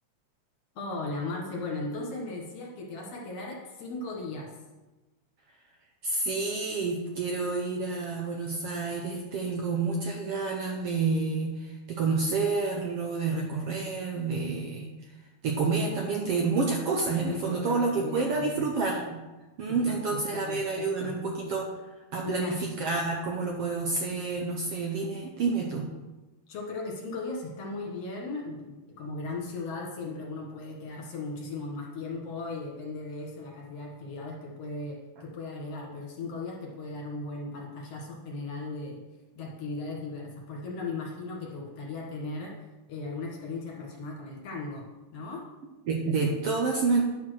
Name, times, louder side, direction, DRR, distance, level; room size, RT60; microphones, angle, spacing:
voice 1, 0.8-4.5 17.2-18.7 19.7-21.2 22.2-22.7 26.5-39.0 39.4-42.5 42.9-45.5, left 3 dB, 60° left, -1 dB, 2.3 m, -37 dB
voice 2, 6.0-14.9 15.4-19.2 19.6-21.7 22.1-25.9 45.9-47.0, right 4 dB, 65° right, 0 dB, 1.5 m, -29 dB
9.8 x 4.4 x 6.2 m, 1.1 s
omnidirectional pair, 3.5 m